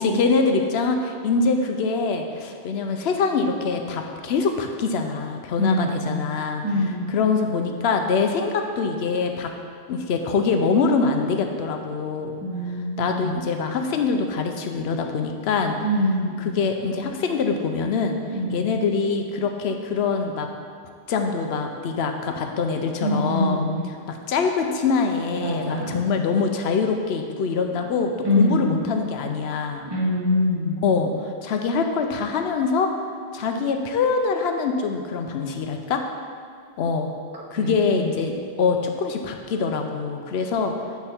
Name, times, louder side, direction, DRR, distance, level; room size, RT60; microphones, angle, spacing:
voice 1, 0.0-9.5 9.9-12.4 13.0-15.8 16.4-18.2 18.5-20.5 21.1-23.7 24.1-29.8 30.8-32.9 33.3-36.0 36.8-37.1 37.5-40.7, left 4 dB, 65° left, 5 dB, 0.9 m, -24 dB
voice 2, 5.6-6.1 6.6-7.1 12.4-13.3 15.8-16.4 18.3-18.6 23.0-23.8 25.4-26.1 28.2-28.7 29.9-30.7 37.6-38.0, left 1 dB, 20° right, -7 dB, 1.5 m, -24 dB
8.8 x 4.6 x 4.3 m, 2.1 s
omnidirectional pair, 1.2 m